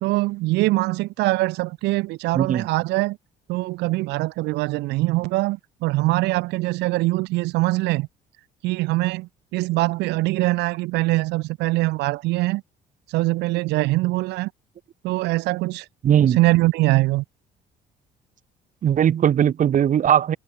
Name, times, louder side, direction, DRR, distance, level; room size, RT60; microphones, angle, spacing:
voice 1, 0.0-3.2 3.5-8.1 8.6-12.6 13.1-14.5 15.0-15.9 16.2-17.2, right 20 dB, 90° right, 1.7 m, -23 dB
voice 2, 2.3-2.7 16.0-16.4 18.8-20.4, right 9 dB, 50° right, 2.5 m, -19 dB
cardioid pair, 110°, 17 cm